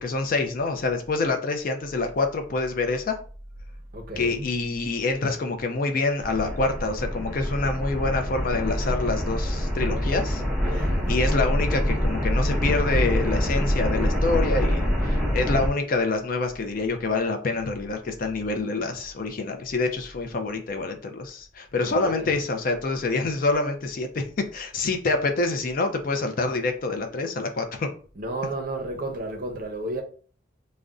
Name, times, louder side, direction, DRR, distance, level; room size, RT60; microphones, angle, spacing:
voice 1, 0.0-3.2 4.2-10.4 10.7-27.9, left 3 dB, 45° left, 0.4 m, -26 dB
voice 2, 3.9-4.5 10.6-11.1 21.8-22.4 28.1-30.0, right 1 dB, 50° right, 0.6 m, -32 dB
sound 1, 6.2-15.7, equal, ahead, 0.6 m, -25 dB
2.5 x 2.1 x 3.5 m
head